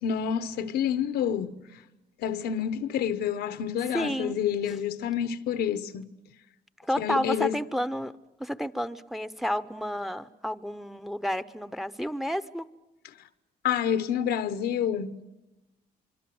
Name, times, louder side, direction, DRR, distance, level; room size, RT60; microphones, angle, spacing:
voice 1, 0.0-1.6 2.2-6.1 7.0-7.5 13.6-15.2, left 8 dB, 85° left, 1.1 m, -28 dB
voice 2, 3.9-4.4 6.8-8.1 8.4-12.7, equal, ahead, 0.8 m, -31 dB
25.0 x 25.0 x 7.9 m
cardioid pair, 100°, 17 cm